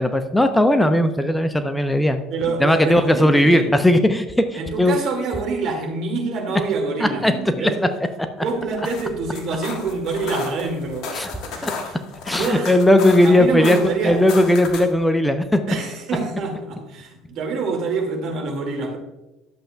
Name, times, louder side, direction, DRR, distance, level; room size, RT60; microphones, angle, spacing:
voice 1, 0.0-2.2 2.5-5.0 7.0-7.9 11.1-11.3 11.6-11.7 12.3-15.6, left 1 dB, 5° left, 8 dB, 0.7 m, -17 dB
voice 2, 2.3-3.8 4.6-7.8 8.4-11.1 11.5-11.9 12.3-12.7 13.2-14.2 15.7-19.0, right 4 dB, 50° right, 2 dB, 2.1 m, -26 dB
Footsteps in the snow, 8.6-15.0, left 4 dB, 60° left, 1.4 m, -34 dB
11.5 x 7.7 x 2.3 m, 1.0 s
hypercardioid pair, 65°, 0 cm